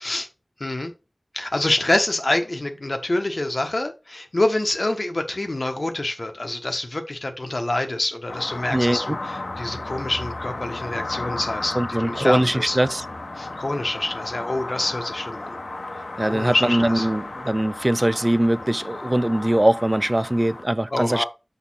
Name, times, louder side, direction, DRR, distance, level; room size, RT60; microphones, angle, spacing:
voice 1, 0.6-0.9 1.3-12.8 13.4-15.6 16.3-17.1 20.9-21.2, left 1 dB, 55° left, 1.2 m, -26 dB
sound 1, 8.3-20.6, left 2 dB, 85° left, 1.1 m, -34 dB
voice 2, 8.7-9.2 11.8-13.0 16.2-21.2, right 1 dB, 30° right, 0.3 m, -21 dB
6.4 x 3.6 x 5.6 m
wide cardioid pair, 55°, 0 cm